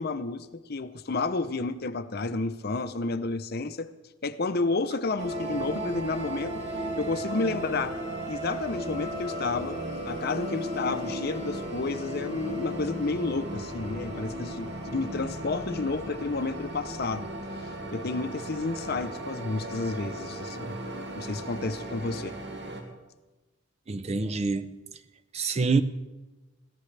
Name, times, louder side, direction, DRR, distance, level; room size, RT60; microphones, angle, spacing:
voice 1, 0.0-3.9 4.2-6.6 7.0-8.0 8.3-17.3 17.6-20.8 21.1-22.4, left 3 dB, 50° left, 0.7 m, -31 dB
sound 1, 5.2-22.8, right 1 dB, 55° right, 2.4 m, -36 dB
voice 2, 23.9-24.8 25.3-25.8, right 4 dB, 30° right, 0.5 m, -26 dB
22.0 x 16.0 x 3.3 m
head